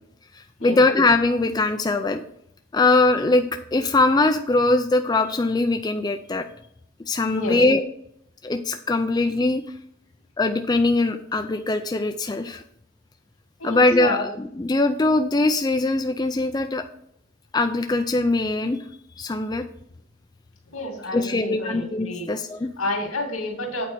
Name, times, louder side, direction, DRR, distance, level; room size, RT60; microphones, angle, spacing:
voice 1, 0.3-2.2 2.7-3.5 3.7-6.5 7.1-7.8 8.4-9.6 10.4-12.6 13.6-16.8 17.5-18.8 19.2-19.6 21.1-22.7, left 2 dB, 20° left, 6 dB, 0.4 m, -21 dB
voice 2, 13.6-14.2 20.7-22.3 22.8-23.9, left 2 dB, 85° left, 2 dB, 2.3 m, -30 dB
8.4 x 4.5 x 6.2 m, 0.70 s
head